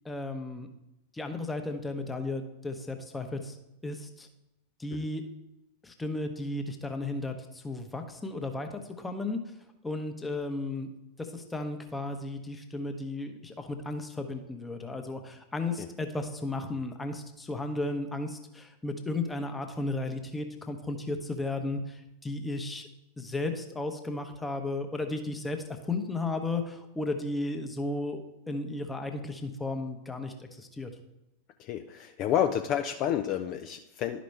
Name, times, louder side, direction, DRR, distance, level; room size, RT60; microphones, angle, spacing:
voice 1, 0.0-0.7 1.1-3.6 3.8-4.3 4.8-5.2 5.8-9.4 9.8-10.9 11.2-22.9 23.2-25.6 25.8-30.9, left 2 dB, 10° left, 6 dB, 0.9 m, -34 dB
voice 2, 31.6-34.2, left 10 dB, 40° left, 7 dB, 0.4 m, -30 dB
11.5 x 5.1 x 3.3 m, 0.92 s
figure-of-eight pair, 90°, 0 cm